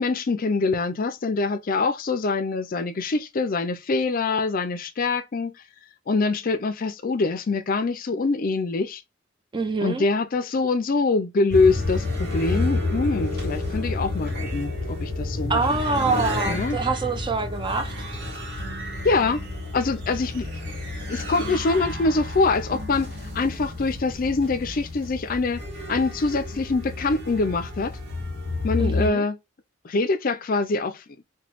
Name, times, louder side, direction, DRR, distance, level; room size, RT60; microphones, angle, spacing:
voice 1, 0.0-5.6 6.1-9.0 9.8-16.1 16.5-16.8 19.0-19.4 19.7-20.5 21.1-25.6 25.9-28.0 28.6-29.4 29.8-31.2, left 3 dB, 45° left, 0.4 m, -24 dB
voice 2, 9.5-10.1 15.5-17.9 28.8-29.2, right 4 dB, 25° right, 0.4 m, -25 dB
sound 1, 11.5-29.1, left 2 dB, 55° right, 1.4 m, -30 dB
3.0 x 2.2 x 2.9 m
head